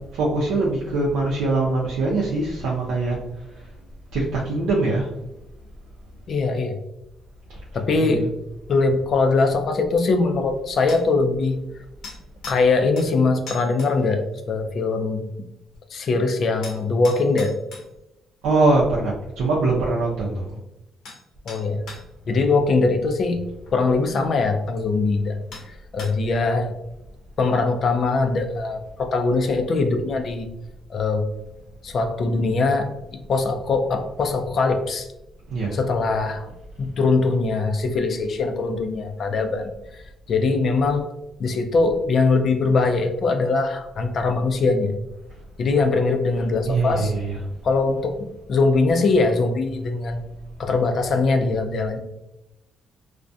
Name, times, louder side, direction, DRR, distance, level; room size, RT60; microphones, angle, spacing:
voice 1, 0.0-3.7 4.1-5.1 7.9-8.3 18.4-20.6 35.5-35.8 46.4-47.5, right 2 dB, 85° right, -4 dB, 0.5 m, -23 dB
voice 2, 6.3-6.8 7.7-8.3 8.7-11.6 12.5-15.3 15.9-17.5 21.5-21.8 22.3-23.4 23.7-26.7 27.4-30.5 30.9-31.3 31.8-32.9 33.3-35.1 35.7-36.5 36.8-40.0 40.3-41.1 41.4-45.0 45.6-47.1 47.6-50.2 50.6-52.0, left 3 dB, 55° left, 5 dB, 0.4 m, -22 dB
sound 1, 10.9-11.1 12.0-12.7 13.0-13.1 13.5-13.9 16.6-17.9 20.5-20.6 21.0-21.2 21.5-22.0 23.7-23.8 24.8-24.9 25.5-25.7 26.0-26.3, left 3 dB, 75° left, 0.7 m, -39 dB
2.3 x 2.1 x 2.5 m, 0.90 s
cardioid pair, 90°, 0 cm